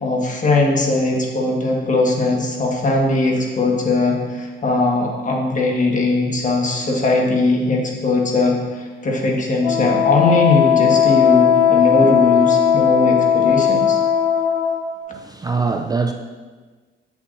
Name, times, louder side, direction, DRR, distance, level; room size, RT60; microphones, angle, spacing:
voice 1, 0.0-14.0, left 2 dB, 40° left, -1 dB, 1.6 m, -19 dB
Wind instrument woodwind instrument, 9.6-14.9, left 8 dB, 80° left, 0.8 m, -16 dB
voice 2, 15.1-16.1, right 4 dB, 20° right, 4 dB, 0.4 m, -22 dB
8.2 x 7.1 x 2.6 m, 1.4 s
cardioid pair, 90°, 20 cm